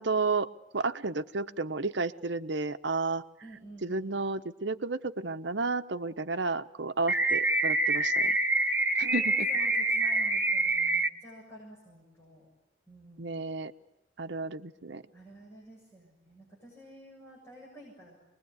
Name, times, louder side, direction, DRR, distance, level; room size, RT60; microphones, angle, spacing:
voice 1, 0.0-3.2 3.8-8.4 9.0-9.5 13.2-13.7 14.2-15.0, right 3 dB, 70° right, 10 dB, 1.0 m, -32 dB
voice 2, 3.4-4.2 8.6-8.8 9.0-12.5 12.9-13.4 15.1-18.2, equal, 15° left, -4 dB, 7.5 m, -51 dB
sound 1, 7.1-11.1, right 2 dB, 10° right, 1.1 m, -26 dB
25.5 x 21.0 x 9.6 m, 0.91 s
head